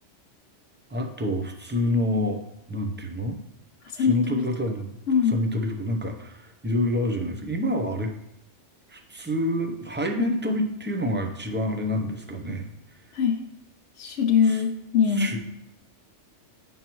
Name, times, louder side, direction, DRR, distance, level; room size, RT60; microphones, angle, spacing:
voice 1, 0.9-2.4 2.7-3.4 4.0-4.9 5.3-8.1 8.9-12.7 14.4-14.6 15.2-15.4, left 1 dB, 15° right, 3 dB, 0.4 m, -27 dB
voice 2, 3.8-4.5 5.1-5.4 13.1-13.4 14.0-15.4, left 6 dB, 75° left, 2 dB, 0.9 m, -22 dB
8.8 x 5.4 x 3.0 m, 0.83 s
omnidirectional pair, 1.2 m